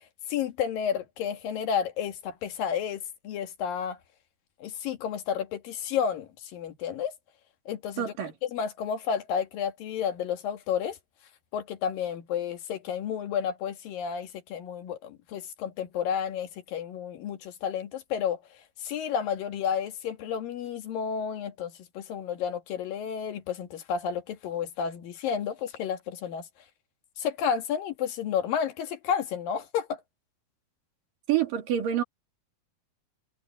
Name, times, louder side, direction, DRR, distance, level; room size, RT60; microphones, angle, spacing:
voice 1, 0.3-4.0 4.6-7.1 7.7-8.1 8.5-11.0 11.5-18.4 18.8-26.5 27.2-30.0, left 8 dB, 75° left, 3.4 m, -31 dB
voice 2, 8.0-8.3 31.3-32.0, right 10 dB, 70° right, 4.2 m, -27 dB
omnidirectional pair, 4.1 m